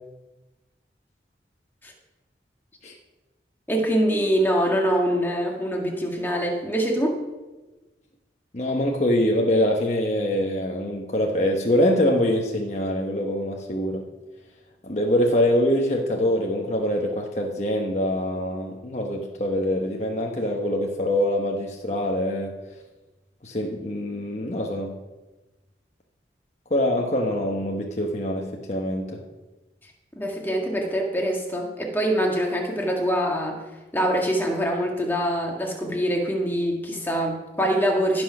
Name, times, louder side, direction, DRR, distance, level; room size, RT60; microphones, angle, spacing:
voice 1, 3.7-7.2 30.2-33.6 33.9-38.2, equal, 10° left, 0 dB, 1.8 m, -24 dB
voice 2, 8.5-14.0 14.8-22.5 23.4-24.9 26.7-29.2, left 1 dB, 40° left, 0 dB, 1.1 m, -24 dB
15.5 x 6.2 x 5.9 m, 1.1 s
head